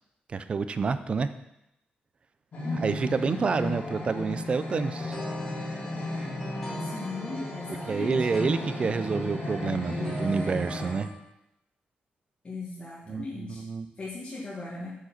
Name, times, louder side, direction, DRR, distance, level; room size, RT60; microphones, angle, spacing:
voice 1, 0.3-1.3 2.7-5.2 7.9-11.1 13.1-13.9, right 5 dB, 35° right, 12 dB, 0.4 m, -28 dB
sound 1, 2.5-10.9, left 1 dB, 50° left, 2.1 m, -35 dB
voice 2, 2.6-3.0 6.8-8.1 12.4-13.6 14.0-14.9, left 3 dB, 35° left, -7 dB, 1.5 m, -37 dB
sound 2, 5.0-11.1, equal, 5° left, 1.6 m, -39 dB
6.6 x 4.9 x 5.8 m, 0.87 s
wide cardioid pair, 170°, 3 cm